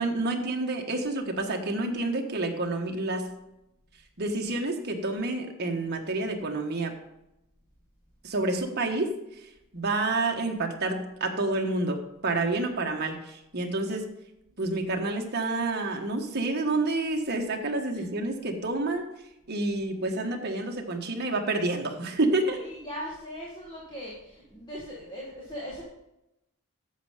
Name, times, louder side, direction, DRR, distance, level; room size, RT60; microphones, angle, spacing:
voice 1, 0.0-3.3 4.2-6.9 8.2-14.1 14.6-19.0 19.5-22.6, right 2 dB, 50° right, 3 dB, 1.4 m, -29 dB
voice 2, 22.4-25.8, equal, 20° left, -4 dB, 1.9 m, -39 dB
10.0 x 7.4 x 5.0 m, 0.89 s
head